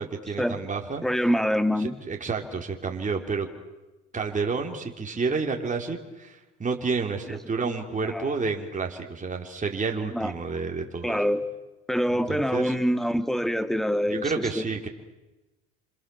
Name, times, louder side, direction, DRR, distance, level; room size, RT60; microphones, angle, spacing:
voice 1, 0.0-1.0 1.8-3.5 4.1-11.2 12.3-12.7 14.1-14.9, right 4 dB, 25° right, 2 dB, 4.3 m, -30 dB
voice 2, 1.0-2.0 7.3-7.4 7.6-7.7 8.1-8.3 10.1-10.3 11.0-11.4 11.9-14.6, equal, ahead, 9 dB, 2.4 m, -25 dB
30.0 x 27.0 x 7.4 m, 1.1 s
supercardioid pair, 90°, 32 cm